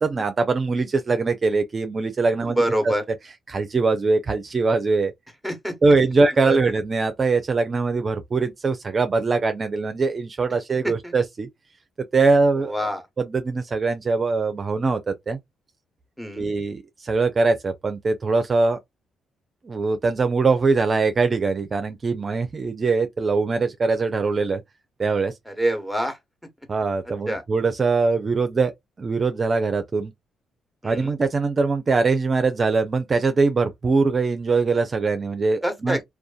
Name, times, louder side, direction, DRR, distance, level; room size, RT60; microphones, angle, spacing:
voice 1, 0.0-2.9 3.5-5.1 5.8-11.5 12.1-12.7 13.2-15.4 16.4-18.8 19.6-24.6 25.0-25.3 26.7-28.7 29.0-30.1 30.8-36.0, right 4 dB, 40° right, 0.4 m, -22 dB
voice 2, 2.5-3.0 5.4-5.7 6.4-6.6 10.8-11.1 12.6-13.0 16.2-16.5 25.5-26.2 27.3-27.4 30.8-31.1 35.6-36.0, right 1 dB, 5° left, 1.0 m, -25 dB
2.4 x 2.3 x 2.3 m
supercardioid pair, 55°, 0 cm